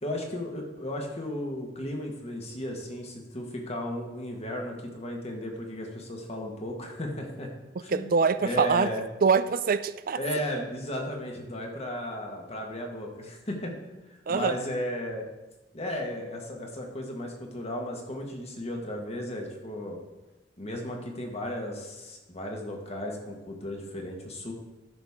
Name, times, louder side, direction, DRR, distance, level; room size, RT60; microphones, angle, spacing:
voice 1, 0.0-7.5 7.8-8.1 8.4-9.0 10.1-14.0 14.3-15.3 15.7-20.0 20.6-24.5, left 1 dB, 35° left, 1 dB, 1.7 m, -35 dB
voice 2, 7.9-8.9 9.2-10.2 14.3-14.6, right 5 dB, 55° right, 14 dB, 0.4 m, -24 dB
14.0 x 6.3 x 3.7 m, 1.1 s
head